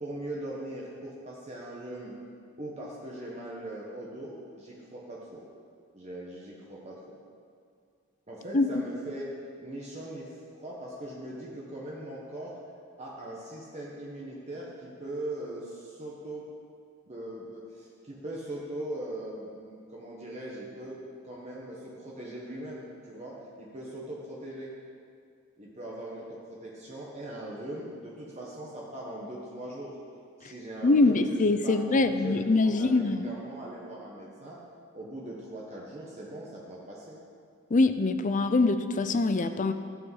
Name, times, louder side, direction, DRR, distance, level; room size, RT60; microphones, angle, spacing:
voice 1, 0.0-2.1 2.6-5.4 5.9-7.0 8.3-9.3 9.6-12.5 13.0-16.4 17.1-21.0 21.2-24.7 25.6-30.0 30.4-31.4 31.6-34.6 34.9-37.2, right 1 dB, 30° right, -5 dB, 1.4 m, -40 dB
voice 2, 30.8-33.3 37.7-39.7, left 3 dB, 35° left, 10 dB, 0.5 m, -24 dB
14.5 x 5.0 x 8.0 m, 2.3 s
head